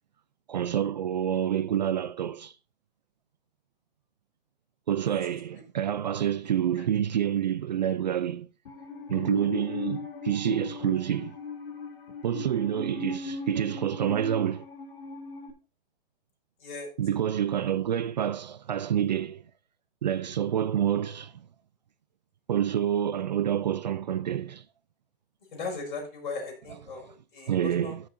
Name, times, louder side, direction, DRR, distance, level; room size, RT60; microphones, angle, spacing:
voice 1, 0.5-2.5 4.9-8.5 9.1-11.4 12.2-14.7 17.0-19.4 20.0-21.3 22.5-24.6 27.5-28.0, right 10 dB, 50° right, 0.4 m, -28 dB
Musical instrument, 8.7-15.5, left 4 dB, 75° left, 2.5 m, -38 dB
voice 2, 16.6-16.9 25.5-28.0, left 4 dB, 55° left, 5.4 m, -38 dB
15.5 x 6.4 x 2.6 m
hypercardioid pair, 175°, 29 cm